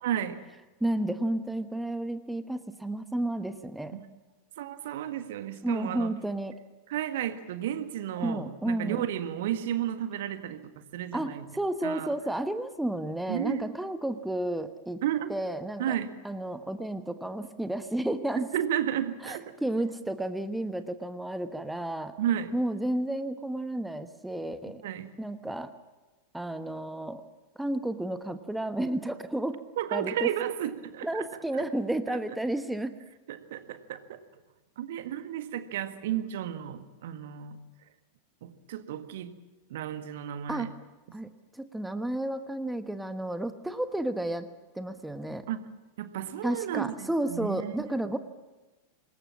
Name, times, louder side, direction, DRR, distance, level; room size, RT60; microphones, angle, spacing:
voice 1, 0.0-0.4 4.6-6.1 6.9-11.5 11.8-12.1 13.3-13.6 15.0-15.3 15.8-16.1 18.4-19.6 22.2-22.6 24.6-25.1 29.8-31.3 31.5-31.6 33.3-34.2 34.8-37.6 38.4-39.3 39.7-40.7 45.5-45.6 46.0-47.9, right 11 dB, 55° right, 10 dB, 1.6 m, -33 dB
voice 2, 0.8-4.0 5.6-6.5 8.2-9.1 11.1-15.0 15.3-16.0 16.2-18.5 19.2-22.2 22.5-24.8 25.2-25.7 26.3-27.2 27.5-29.6 29.9-30.3 31.0-32.9 40.5-40.7 41.1-44.5 44.7-45.5 46.4-48.2, right 1 dB, 5° right, 9 dB, 1.2 m, -32 dB
26.5 x 21.0 x 7.5 m, 1.2 s
figure-of-eight pair, 90°, 0 cm